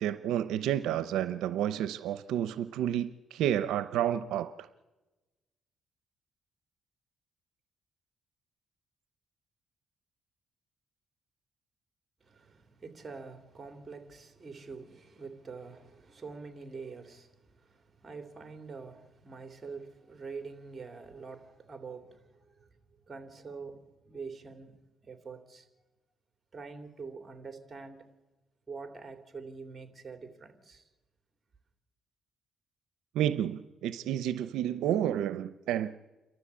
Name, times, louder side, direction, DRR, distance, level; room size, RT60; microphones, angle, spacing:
voice 1, 0.0-4.5 33.1-35.9, right 11 dB, 90° right, 0.7 m, -30 dB
voice 2, 12.2-25.7 26.5-28.1 28.7-30.9, right 4 dB, 30° right, 3.2 m, -45 dB
28.5 x 13.0 x 8.4 m
cardioid pair, 90°, 0 cm